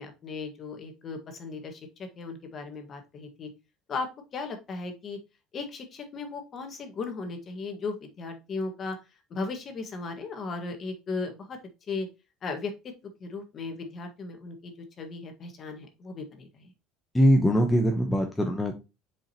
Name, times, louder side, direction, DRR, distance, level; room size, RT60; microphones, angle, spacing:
voice 1, 0.0-3.5 3.9-5.2 5.5-9.0 9.3-11.6 11.9-12.1 12.4-12.9 13.2-16.7, left 3 dB, 35° left, 6 dB, 1.6 m, -36 dB
voice 2, 17.1-18.8, equal, 10° left, 3 dB, 0.8 m, -22 dB
7.2 x 5.1 x 2.9 m, 0.27 s
cardioid pair, 140°, 0 cm